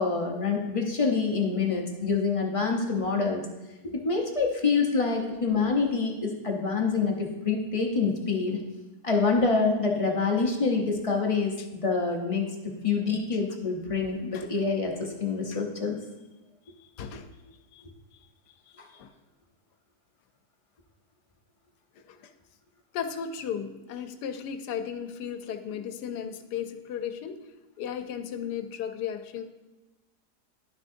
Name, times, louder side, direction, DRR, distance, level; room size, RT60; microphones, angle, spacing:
voice 1, 0.0-3.5 3.9-8.6 9.0-12.5 12.8-16.0 18.8-18.9, left 4 dB, 40° left, 0 dB, 0.4 m, -26 dB
voice 2, 22.9-27.4 27.8-29.4, left 8 dB, 90° left, 8 dB, 1.2 m, -35 dB
11.0 x 6.2 x 2.6 m, 1.1 s
omnidirectional pair, 1.7 m